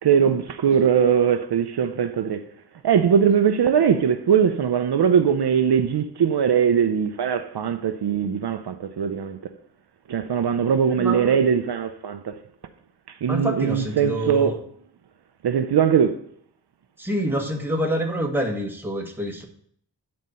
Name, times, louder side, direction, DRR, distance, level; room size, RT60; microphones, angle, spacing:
voice 1, 0.0-2.4 2.8-9.4 10.1-12.4 13.1-14.6 15.4-16.2, right 7 dB, 70° right, 0.6 m, -21 dB
voice 2, 11.0-11.4 13.3-14.5 17.0-19.5, equal, 5° right, 1.5 m, -27 dB
9.4 x 4.3 x 5.4 m
wide cardioid pair, 85°, 41 cm